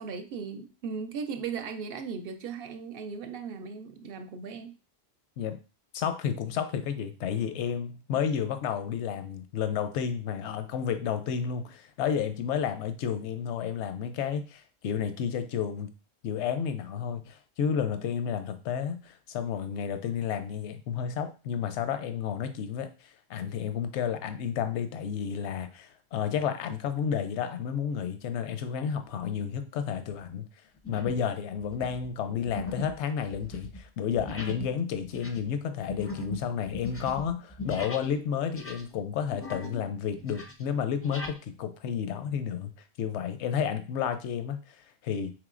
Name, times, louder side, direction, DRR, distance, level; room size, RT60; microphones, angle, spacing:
voice 1, 0.0-4.8, right 5 dB, 65° right, 7 dB, 0.7 m, -37 dB
voice 2, 5.9-15.9 16.2-30.4 30.9-42.7 43.0-44.8 45.0-45.3, left 7 dB, 80° left, 10 dB, 0.9 m, -31 dB
sound 1, 30.1-30.2 30.8-31.3 31.6-38.2 38.5-39.9 40.2-41.4, left 2 dB, 25° left, 0.3 m, -40 dB
4.8 x 3.6 x 2.4 m, 0.33 s
omnidirectional pair, 1.1 m